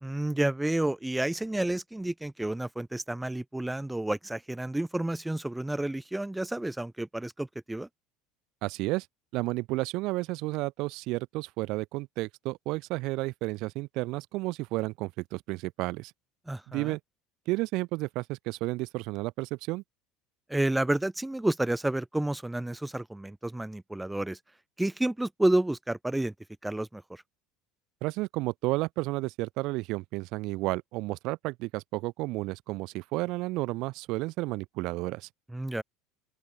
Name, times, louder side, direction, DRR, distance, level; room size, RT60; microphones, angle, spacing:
voice 1, 0.0-7.9 16.5-16.9 20.5-24.4 24.8-26.3 26.6-27.2 35.5-35.8, right 1 dB, 5° right, 1.3 m, -30 dB
voice 2, 8.6-9.1 9.3-16.1 16.7-17.0 17.5-19.8 28.0-35.3, right 21 dB, 55° right, 1.1 m, -32 dB
open air
figure-of-eight pair, 70°, 0 cm